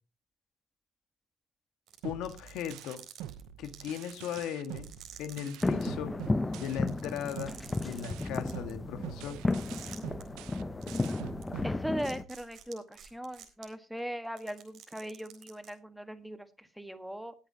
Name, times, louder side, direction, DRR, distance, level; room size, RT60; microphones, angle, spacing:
sound 1, 1.9-5.9 6.2-6.3 6.5-8.7 9.5-10.2 10.8-11.1 11.4-11.5 12.0-13.6 14.2-15.7, right 10 dB, 65° right, 3.8 m, -50 dB
voice 1, 2.0-3.0 3.6-4.9 5.2-6.1 6.6-9.4, left 9 dB, 80° left, 10 dB, 1.6 m, -38 dB
sound 2, 2.0-7.1 7.4-12.4, right 12 dB, 90° right, 0.8 m, -45 dB
sound 3, 5.6-12.2, left 2 dB, 15° left, 0.7 m, -33 dB
voice 2, 11.6-17.3, equal, 5° right, 10 dB, 1.5 m, -39 dB
19.5 x 8.9 x 2.8 m, 0.30 s
cardioid pair, 95°, 0 cm